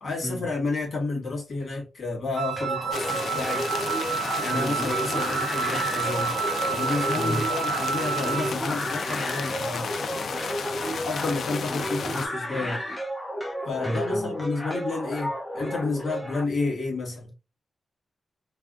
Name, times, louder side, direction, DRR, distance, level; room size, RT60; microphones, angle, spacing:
voice 1, 0.0-3.7 4.4-6.3 6.7-10.1 11.0-12.8 13.7-17.3, left 3 dB, 55° left, 1.8 m, -30 dB
Wind instrument woodwind instrument, 2.4-8.6, right 8 dB, 50° right, 0.5 m, -30 dB
sound 1, 2.6-16.4, equal, 15° left, 0.9 m, -32 dB
sound 2, 2.9-12.3, left 6 dB, 75° left, 0.4 m, -33 dB
voice 2, 4.5-4.9 7.1-7.5 13.8-14.4, equal, ahead, 0.4 m, -32 dB
3.3 x 2.2 x 2.5 m
wide cardioid pair, 125°, 0 cm